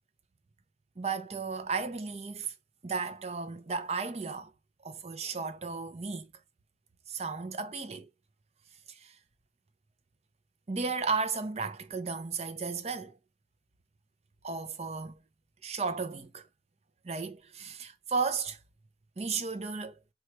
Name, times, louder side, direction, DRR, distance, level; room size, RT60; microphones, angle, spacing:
voice 1, 1.0-2.5 2.8-4.5 4.8-6.3 7.1-8.1 8.9-9.2 10.7-13.1 14.4-15.2 15.6-16.5 17.0-18.6 19.2-20.0, right 4 dB, 35° right, 0.5 m, -34 dB
4.5 x 2.4 x 2.8 m
head